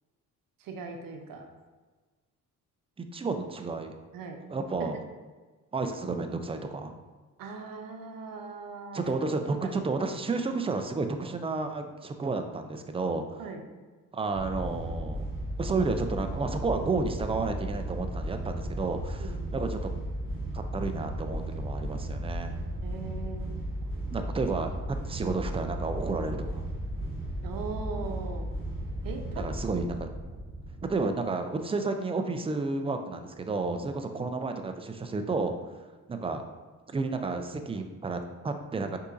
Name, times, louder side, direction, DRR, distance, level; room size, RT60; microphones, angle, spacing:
voice 1, 0.6-1.4 4.1-4.4 7.4-9.0 13.4-13.6 19.2-19.6 22.8-23.6 27.4-28.5 29.0-29.4, right 4 dB, 80° right, 4 dB, 0.8 m, -39 dB
voice 2, 3.0-3.9 4.5-5.0 5.7-6.9 8.9-13.4 14.1-15.2 15.6-19.9 20.5-22.6 24.1-24.8 25.0-26.7 29.3-30.1 30.8-35.5 36.1-36.4 36.9-39.0, right 3 dB, 15° right, 6 dB, 0.4 m, -31 dB
sound 1, 14.3-30.9, right 1 dB, 40° right, 1.2 m, -35 dB
5.3 x 3.8 x 2.6 m, 1.3 s
cardioid pair, 95°, 33 cm